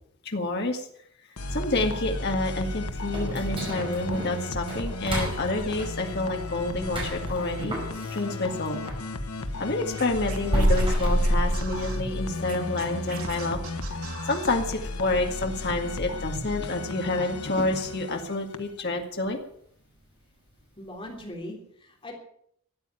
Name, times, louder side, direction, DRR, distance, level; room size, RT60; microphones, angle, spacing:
voice 1, 0.2-0.8 1.5-7.8 8.1-8.8 9.6-13.7 14.3-19.4, left 2 dB, 50° left, 2 dB, 2.0 m, -28 dB
sound 1, 1.4-18.8, left 2 dB, 85° left, 1.4 m, -34 dB
sound 2, 3.1-9.1 9.4-12.3 12.6-12.7 13.2-13.3 13.9-14.2 14.5-14.6 15.2-15.3, equal, 25° right, 5.1 m, -29 dB
Scratching (performance technique), 9.9-12.0 12.4-14.6, right 6 dB, 85° right, 4.3 m, -42 dB
voice 2, 20.8-22.1, left 1 dB, 25° left, 1 dB, 3.2 m, -40 dB
13.5 x 9.3 x 9.0 m, 0.67 s
head